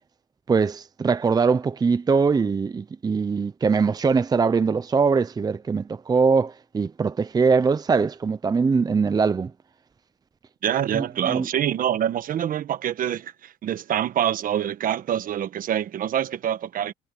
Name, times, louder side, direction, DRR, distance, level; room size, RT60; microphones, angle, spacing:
voice 1, 0.5-9.5 10.9-11.5, right 5 dB, 25° right, 0.7 m, -22 dB
voice 2, 10.6-16.9, right 10 dB, 55° right, 1.3 m, -26 dB
cardioid pair, 110°, 17 cm